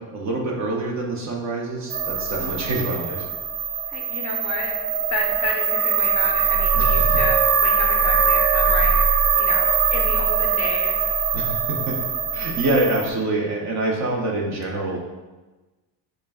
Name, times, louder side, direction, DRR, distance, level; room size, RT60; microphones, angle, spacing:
voice 1, 0.0-3.3 6.8-6.9 11.3-12.0 12.3-15.0, right 2 dB, 35° right, -1 dB, 0.6 m, -25 dB
sound 1, 1.9-13.1, right 6 dB, 90° right, 0.7 m, -21 dB
voice 2, 3.9-4.7 5.1-9.1 9.3-11.1, left 3 dB, 35° left, 0 dB, 0.5 m, -31 dB
4.9 x 2.2 x 3.4 m, 1.2 s
cardioid pair, 135°, 48 cm